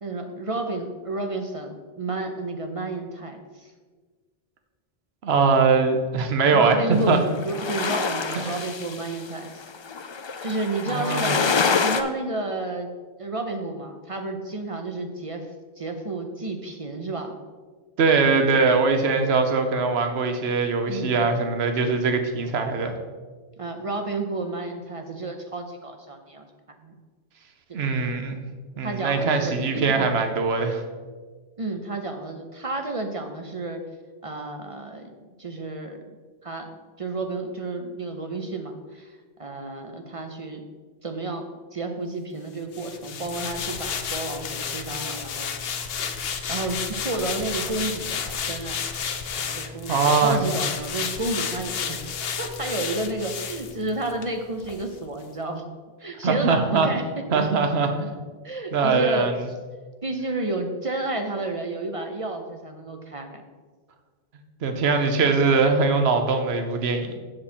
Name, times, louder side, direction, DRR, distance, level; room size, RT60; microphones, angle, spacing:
voice 1, 0.0-3.7 6.5-9.6 10.4-11.5 11.8-12.9 13.2-15.5 15.8-17.4 20.9-21.2 23.6-26.5 26.8-27.0 28.8-30.1 31.6-33.8 34.2-35.1 35.4-36.0 36.4-36.7 37.0-40.6 41.0-41.5 41.7-46.0 46.5-48.8 49.4-52.0 52.4-55.6 56.0-57.2 58.4-59.3 60.0-63.4, right 2 dB, 40° right, 5 dB, 0.7 m, -31 dB
voice 2, 5.2-7.2 8.3-8.6 10.9-11.3 18.0-22.9 27.7-28.4 28.8-30.8 49.9-50.6 56.2-56.9 57.3-58.2 58.7-59.4 64.6-67.2, right 4 dB, 75° right, 6 dB, 1.1 m, -22 dB
sound 1, 6.9-12.0, left 5 dB, 45° left, 0.3 m, -26 dB
sound 2, 42.7-54.3 54.6-54.8, left 6 dB, 70° left, 0.9 m, -31 dB
7.7 x 7.1 x 4.3 m, 1.4 s
omnidirectional pair, 1.1 m